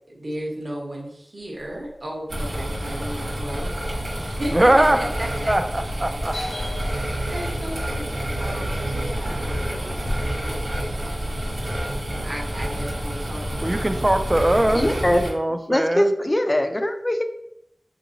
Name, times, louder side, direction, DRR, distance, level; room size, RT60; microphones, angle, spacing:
voice 1, 0.1-3.7 4.1-5.5 6.8-10.5 12.2-13.4, right 1 dB, 60° right, -2 dB, 1.2 m, -34 dB
sound 1, 1.5-11.9, left 1 dB, 75° left, 0.6 m, -41 dB
sound 2, 2.3-15.3, right 1 dB, 80° right, 1.0 m, -28 dB
voice 2, 4.5-5.1 5.5-6.4 13.6-14.9 15.2-16.1, right 1 dB, 30° right, 9 dB, 0.3 m, -21 dB
voice 3, 14.8-15.2 15.7-17.2, left 1 dB, 35° left, 6 dB, 0.4 m, -21 dB
3.7 x 2.8 x 2.7 m, 0.75 s
cardioid pair, 40°, 0 cm